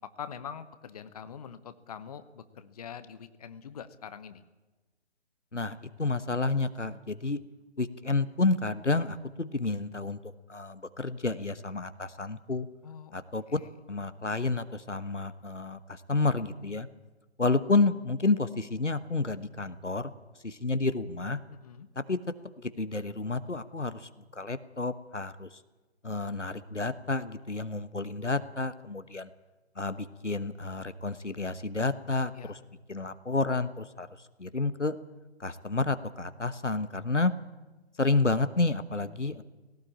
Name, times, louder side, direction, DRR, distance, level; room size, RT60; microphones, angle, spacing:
voice 1, 0.2-4.4 12.8-13.1 13.5-13.7 21.5-21.9 32.3-32.6, left 7 dB, 35° left, 12 dB, 0.9 m, -44 dB
voice 2, 5.5-7.4 7.8-10.2 10.5-12.7 13.1-13.4 13.9-16.9 17.4-20.1 20.4-21.4 21.9-22.2 22.6-25.5 26.0-29.3 29.8-32.6 32.9-34.1 34.4-34.9 35.4-37.3 38.0-39.4, left 3 dB, 90° left, 12 dB, 1.3 m, -30 dB
18.0 x 17.5 x 8.7 m, 1.2 s
figure-of-eight pair, 140°, 35 cm